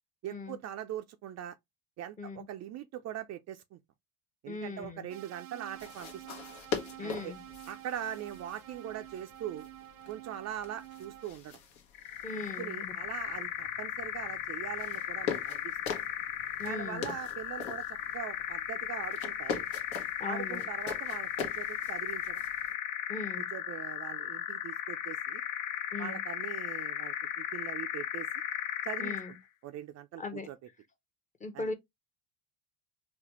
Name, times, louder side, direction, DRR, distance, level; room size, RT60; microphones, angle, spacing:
voice 1, 0.2-1.6 2.0-3.8 4.4-6.2 7.0-7.3 7.7-9.7 10.1-11.6 12.3-15.8 16.6-19.7 20.2-22.4 23.4-25.4 26.0-28.3 28.8-29.4 29.6-30.6 31.5-31.7, right 11 dB, 40° right, 0.4 m, -41 dB
voice 2, 4.5-5.1 7.0-7.4 12.2-12.9 16.6-17.1 20.2-20.7 23.1-23.5 25.9-26.2 29.0-29.3 30.2-30.5 31.4-31.7, left 3 dB, 20° left, 0.8 m, -39 dB
sound 1, 5.1-11.3, right 13 dB, 90° right, 0.7 m, -49 dB
sound 2, 5.7-22.7, left 6 dB, 70° left, 1.1 m, -43 dB
sound 3, 11.9-29.4, left 11 dB, 50° left, 0.6 m, -36 dB
4.0 x 2.2 x 2.9 m
supercardioid pair, 90°, 41 cm